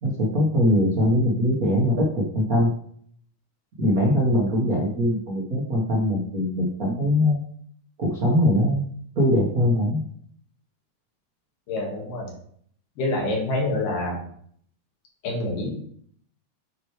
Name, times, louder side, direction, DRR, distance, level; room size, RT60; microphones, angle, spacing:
voice 1, 0.0-2.7 3.8-7.4 8.0-10.0, left 1 dB, 85° right, -3 dB, 0.7 m, -22 dB
voice 2, 11.7-12.3 13.0-14.2 15.2-15.7, left 2 dB, 90° left, -1 dB, 3.3 m, -26 dB
9.4 x 4.6 x 3.2 m, 0.62 s
omnidirectional pair, 3.6 m